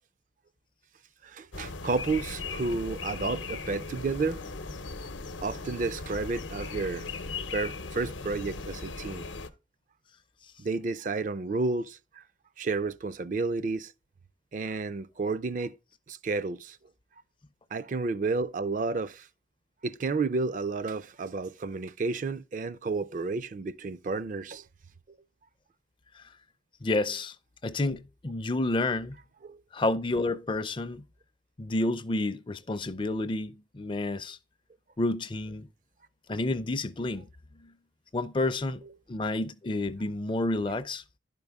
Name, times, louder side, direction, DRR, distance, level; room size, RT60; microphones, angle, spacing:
voice 1, 1.2-4.4 5.4-7.1 7.4-9.2 10.6-12.2 12.6-13.9 14.5-15.8 16.1-16.8 17.7-19.3 19.8-24.6 29.4-29.6, right 3 dB, 45° right, 0.4 m, -31 dB
sound 1, 1.5-9.5, left 3 dB, 85° left, 0.8 m, -38 dB
voice 2, 26.8-27.4 27.6-29.2 29.7-31.0 31.6-34.4 35.0-35.7 36.3-37.3 37.6-37.7 38.1-38.8 39.1-41.0, left 2 dB, 25° left, 0.4 m, -30 dB
11.0 x 5.3 x 3.5 m
head